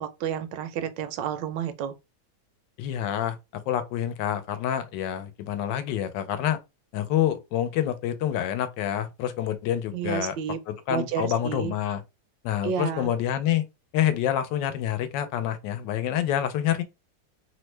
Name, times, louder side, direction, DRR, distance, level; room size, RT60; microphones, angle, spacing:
voice 1, 0.0-1.9 9.9-10.6 10.9-11.7 12.6-13.1, right 8 dB, 80° right, 1.2 m, -30 dB
voice 2, 2.8-3.4 3.7-6.6 6.9-10.3 10.7-12.0 12.4-13.6 13.9-16.8, left 10 dB, 80° left, 1.2 m, -27 dB
3.2 x 2.1 x 3.1 m
omnidirectional pair, 2.0 m